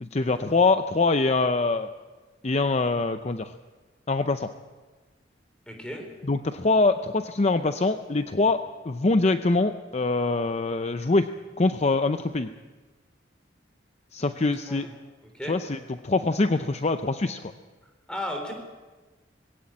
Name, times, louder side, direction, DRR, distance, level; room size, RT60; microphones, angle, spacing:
voice 1, 0.0-1.9 2.4-3.5 4.1-4.5 6.2-11.3 11.6-12.5 14.1-14.9 15.5-17.5, left 3 dB, 35° left, 9 dB, 0.6 m, -24 dB
voice 2, 5.7-6.1 14.7-14.9 15.3-15.6 18.1-18.5, left 1 dB, 5° left, 3 dB, 3.8 m, -35 dB
20.0 x 17.0 x 8.8 m, 1.3 s
head